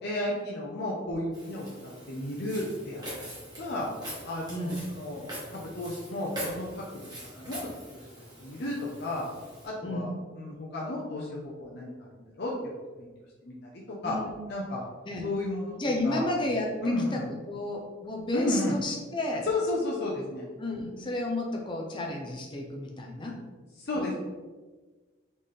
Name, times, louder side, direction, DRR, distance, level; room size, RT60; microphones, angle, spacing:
voice 1, 0.0-3.0 3.6-3.9 4.2-9.2 9.6-10.1 10.4-12.5 13.0-13.1 13.4-14.2 14.5-14.8 15.2-15.8 16.0-16.5 16.8-17.2 18.3-18.8 19.4-20.4 23.8-24.2, left 2 dB, 55° left, -4 dB, 0.7 m, -33 dB
Walk footsteps, 1.3-9.7, equal, 20° right, 1.4 m, -43 dB
voice 2, 4.5-4.8 9.8-10.1 14.0-14.4 15.1-15.3 15.8-16.8 17.1-19.5 20.6-23.4 23.9-24.2, left 1 dB, 25° left, 0 dB, 0.7 m, -32 dB
4.0 x 3.8 x 3.3 m, 1.3 s
head